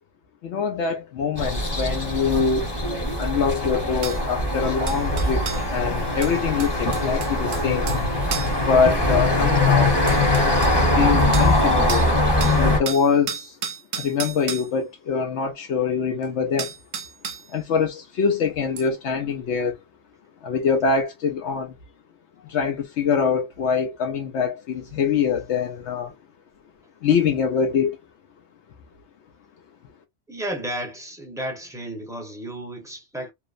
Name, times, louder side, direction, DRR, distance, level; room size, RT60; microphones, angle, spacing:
voice 1, 0.4-2.7 3.2-5.4 5.7-7.9 8.7-10.0 11.0-12.1 12.6-13.5 14.0-16.7 17.5-19.8 20.4-21.7 22.5-26.1 27.0-28.0, left 6 dB, 75° left, 0.9 m, -24 dB
sound 1, 1.4-12.8, left 1 dB, 25° left, 0.8 m, -22 dB
sound 2, 3.2-3.3 4.0-4.2 4.9-5.7 6.2-8.0 8.3-8.6 9.6-9.7 10.1-10.8 11.3-11.6 11.9-12.1 12.4-14.7 16.2-16.3 16.6-17.5 18.8-18.9, right 7 dB, 60° right, 0.7 m, -33 dB
voice 2, 30.3-33.3, right 1 dB, 5° right, 0.7 m, -33 dB
2.8 x 2.0 x 2.4 m
omnidirectional pair, 1.2 m